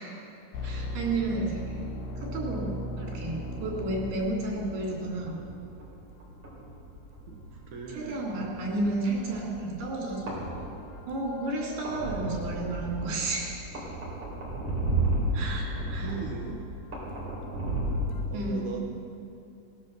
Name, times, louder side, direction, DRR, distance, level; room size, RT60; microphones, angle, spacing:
sound 1, 0.5-4.6 10.1-11.6 11.9-12.0 18.1-18.2, left 1 dB, 80° left, 2.9 m, -37 dB
voice 1, 0.6-1.8 2.2-5.4 7.9-10.3 11.1-13.5 15.3-16.1 18.3-18.7, right 2 dB, 85° right, -3 dB, 5.4 m, -32 dB
sound 2, 3.4-18.1, right 1 dB, 40° right, 5.2 m, -35 dB
voice 2, 7.3-8.2 16.0-16.6 18.3-18.8, right 5 dB, 65° right, 0 dB, 2.2 m, -38 dB
18.5 x 12.0 x 6.6 m, 2.7 s
omnidirectional pair, 4.6 m